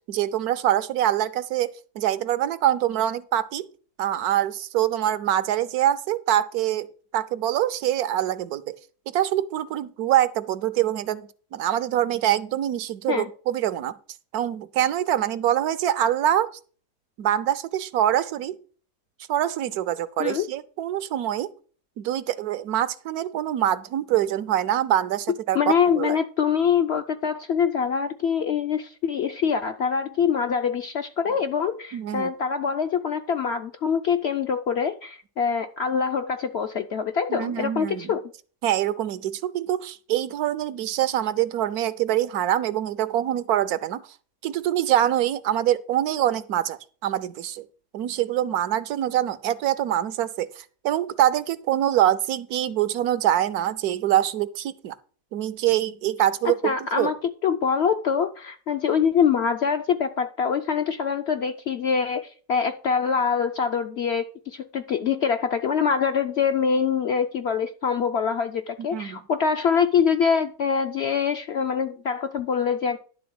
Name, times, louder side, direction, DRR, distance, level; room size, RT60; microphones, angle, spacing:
voice 1, 0.1-3.7 4.0-6.9 7.1-8.8 9.1-14.0 14.3-16.5 17.2-18.6 19.3-21.5 22.0-26.2 31.9-32.3 37.3-38.1 38.6-44.0 44.4-47.7 47.9-54.9 55.3-57.1 68.9-69.2, right 12 dB, 75° right, 1.1 m, -24 dB
voice 2, 25.5-38.2 56.6-57.2 57.4-73.0, left 6 dB, 65° left, 0.6 m, -24 dB
11.0 x 3.9 x 7.6 m
omnidirectional pair, 1.7 m